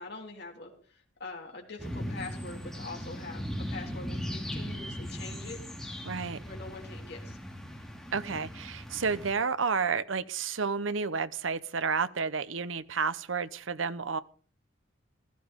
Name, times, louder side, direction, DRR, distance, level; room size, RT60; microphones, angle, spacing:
voice 1, 0.0-3.4 3.7-5.6 6.4-7.4 8.2-8.4, left 3 dB, 55° left, 3.3 m, -44 dB
sound 1, 1.8-9.3, equal, ahead, 2.5 m, -38 dB
voice 2, 6.0-6.4 8.1-14.2, right 5 dB, 75° right, 0.8 m, -31 dB
15.5 x 14.5 x 3.7 m
head